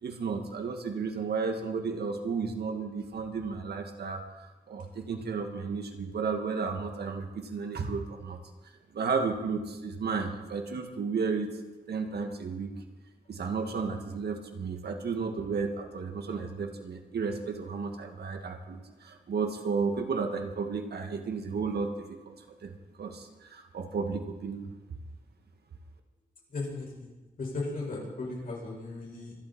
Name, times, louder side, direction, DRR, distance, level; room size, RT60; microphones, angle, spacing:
voice 1, 0.0-8.4 8.9-11.5 11.9-12.7 13.3-22.4 22.6-24.7, right 5 dB, 85° right, 5 dB, 1.9 m, -33 dB
voice 2, 26.5-27.1 27.4-29.3, left 3 dB, 60° left, -2 dB, 5.9 m, -36 dB
25.0 x 11.0 x 4.4 m, 1.2 s
wide cardioid pair, 115°, 16 cm